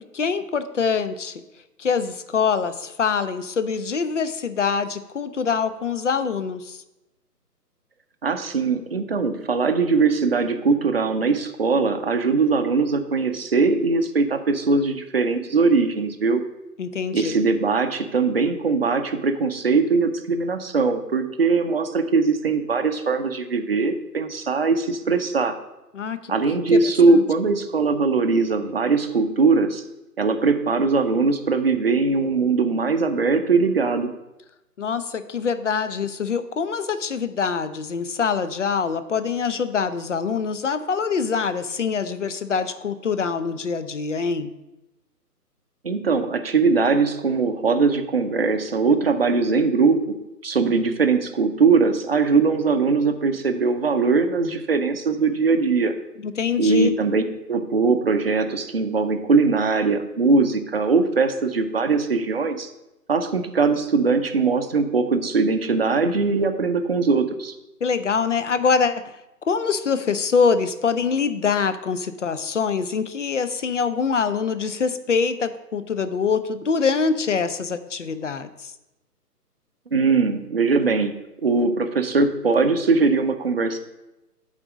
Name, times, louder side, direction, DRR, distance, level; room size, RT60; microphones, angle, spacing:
voice 1, 0.1-1.3 1.8-6.8 16.8-17.4 25.9-26.3 26.7-26.8 27.1-27.2 34.8-44.5 56.2-56.9 67.8-69.1 69.5-78.7, left 5 dB, 50° left, 12 dB, 0.6 m, -24 dB
voice 2, 8.2-16.4 17.1-25.6 26.3-29.8 30.2-34.1 45.8-50.0 50.4-55.9 56.6-57.2 57.5-62.7 63.1-67.5 79.9-81.2 81.4-83.8, right 4 dB, 40° right, 7 dB, 0.6 m, -21 dB
8.7 x 4.1 x 6.0 m, 0.96 s
figure-of-eight pair, 145°, 48 cm